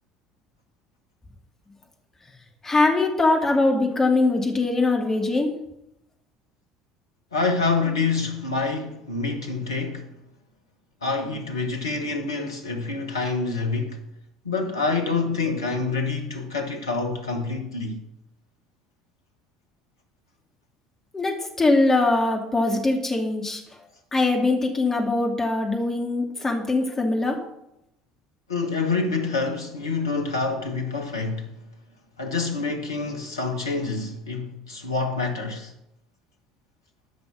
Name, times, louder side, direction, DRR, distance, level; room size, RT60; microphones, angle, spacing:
voice 1, 2.6-5.5 21.1-23.6 24.1-27.4, left 2 dB, 20° left, 2.5 m, -22 dB
voice 2, 7.3-10.1 11.0-14.0 14.4-18.0 28.5-31.5 32.2-35.7, left 4 dB, 80° left, 1.4 m, -27 dB
13.0 x 6.0 x 6.2 m
figure-of-eight pair, 60°, 2 cm